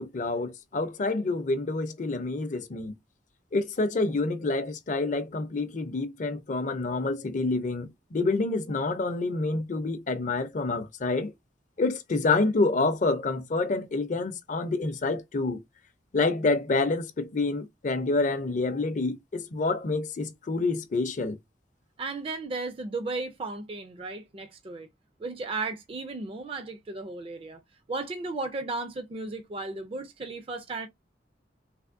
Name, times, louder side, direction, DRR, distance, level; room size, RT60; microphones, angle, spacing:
voice 1, 0.0-2.9 3.5-11.3 11.8-15.6 16.1-21.4, left 3 dB, 40° left, 0.5 m, -28 dB
voice 2, 22.0-24.9 25.2-27.6 27.9-30.9, right 3 dB, 30° right, 0.4 m, -35 dB
3.3 x 3.0 x 2.5 m
head